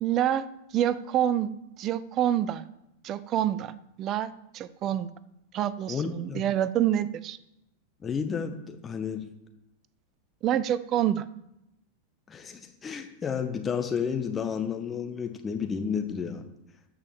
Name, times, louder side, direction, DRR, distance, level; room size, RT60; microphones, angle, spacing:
voice 1, 0.0-0.5 0.7-1.5 1.8-2.7 3.0-3.7 4.0-5.1 5.5-7.4 10.4-11.3, right 11 dB, 35° right, 18 dB, 0.6 m, -27 dB
voice 2, 5.9-6.4 8.0-9.3 12.3-16.4, left 6 dB, 20° left, 5 dB, 1.5 m, -31 dB
14.0 x 5.6 x 7.5 m, 0.86 s
figure-of-eight pair, 90°, 0 cm